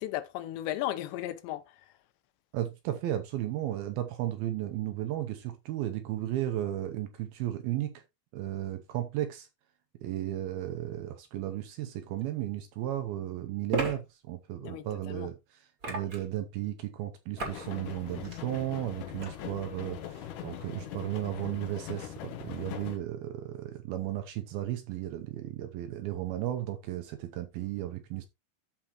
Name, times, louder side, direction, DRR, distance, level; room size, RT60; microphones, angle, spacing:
voice 1, 0.0-1.6 14.6-15.3, left 13 dB, 90° left, 3.1 m, -35 dB
voice 2, 2.5-8.0 8.3-9.5 10.0-28.3, right 13 dB, 75° right, 2.3 m, -34 dB
sound 1, 12.2-12.3 13.7-14.0 15.8-16.3 17.4-17.7 18.1-18.4 19.2-19.3, right 2 dB, 30° right, 1.7 m, -33 dB
sound 2, 17.4-23.0, left 10 dB, 70° left, 2.1 m, -41 dB
13.5 x 5.0 x 3.0 m
omnidirectional pair, 5.0 m